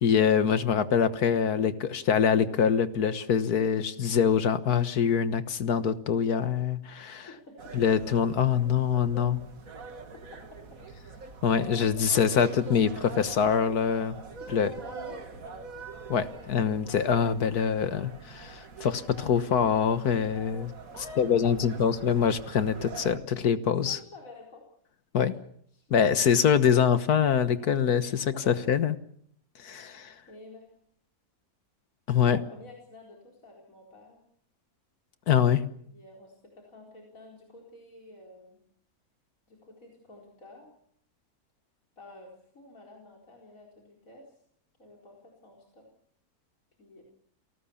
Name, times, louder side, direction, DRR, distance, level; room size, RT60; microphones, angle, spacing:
voice 1, 0.0-7.3 7.7-9.4 11.4-14.2 14.5-14.7 16.1-20.7 21.2-24.0 25.1-25.3 25.9-28.9 29.6-30.1 32.1-32.4 35.3-35.7, left 7 dB, 85° left, 12 dB, 1.8 m, -24 dB
voice 2, 7.3-7.8 10.1-10.4 10.7-10.8 11.7-12.2 14.4-15.6 20.9-21.9 23.8-24.6 25.2-25.3 25.7-26.6 27.5-27.7 28.3-28.6 30.3-30.7 32.2-34.2 35.8-38.6 39.5-40.7 42.0-44.4 44.8-45.8 46.8-47.0, left 2 dB, 65° left, -1 dB, 4.8 m, -49 dB
sound 1, 7.6-23.2, right 4 dB, 65° right, 2.4 m, -44 dB
29.0 x 19.0 x 7.1 m, 0.67 s
omnidirectional pair, 1.6 m